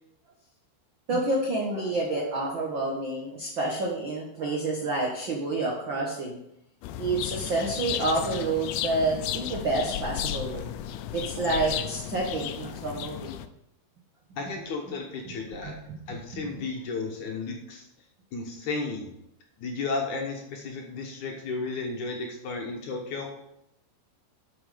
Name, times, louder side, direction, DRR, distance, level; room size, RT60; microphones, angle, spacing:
voice 1, 1.1-6.4 7.0-10.7 11.1-13.3 15.6-16.0 16.3-16.4, right 2 dB, 65° right, -2 dB, 1.1 m, -29 dB
sound 1, 6.8-13.5, left 11 dB, 90° left, 2.7 m, -34 dB
voice 2, 14.4-15.7 16.1-17.8 18.3-19.1 19.6-23.3, left 3 dB, 65° left, 1 dB, 2.2 m, -33 dB
12.0 x 5.9 x 5.1 m, 0.80 s
omnidirectional pair, 4.5 m